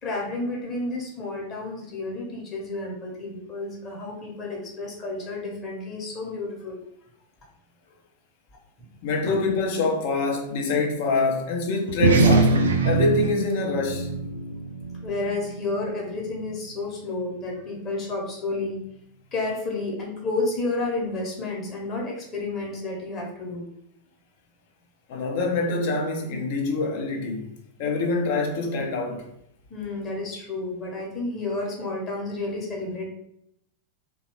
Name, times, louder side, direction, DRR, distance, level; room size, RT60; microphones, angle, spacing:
voice 1, 0.0-6.8 9.3-9.4 15.0-18.8 19.3-23.7 29.7-33.1, left 2 dB, 30° left, 0.9 m, -31 dB
voice 2, 9.0-14.1 25.1-27.5 27.8-29.3, left 3 dB, 50° left, 0.6 m, -25 dB
sound 1, 11.9-16.7, right 3 dB, 65° right, 0.3 m, -24 dB
2.8 x 2.2 x 3.0 m
figure-of-eight pair, 90°, 0 cm